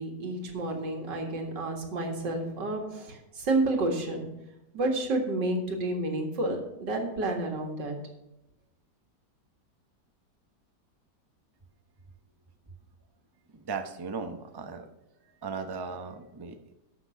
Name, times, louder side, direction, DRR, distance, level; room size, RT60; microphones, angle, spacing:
voice 1, 0.0-4.3 4.7-8.0, right 2 dB, 85° right, 3 dB, 2.6 m, -30 dB
voice 2, 13.5-14.9 15.4-16.7, right 5 dB, 25° right, 7 dB, 0.5 m, -37 dB
12.5 x 6.1 x 5.7 m, 0.93 s
omnidirectional pair, 1.9 m